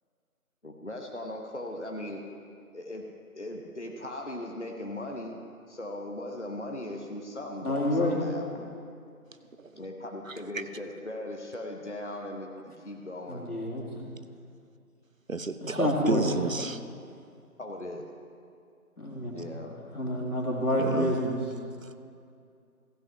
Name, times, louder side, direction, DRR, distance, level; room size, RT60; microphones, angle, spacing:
voice 1, 0.6-2.2 2.7-3.1 3.3-5.4 5.7-8.7 9.8-12.5 12.8-13.5 17.6-18.0 19.3-19.7, left 1 dB, 50° left, 1 dB, 0.9 m, -38 dB
voice 2, 7.6-8.2 13.3-13.8 15.6-16.5 19.0-19.4 19.9-21.4, left 1 dB, 80° left, -2 dB, 2.6 m, -28 dB
voice 3, 10.3-10.6 15.3-16.8 20.8-21.2, right 3 dB, 60° right, 11 dB, 0.6 m, -31 dB
15.0 x 5.6 x 5.5 m, 2.4 s
figure-of-eight pair, 180°, 45 cm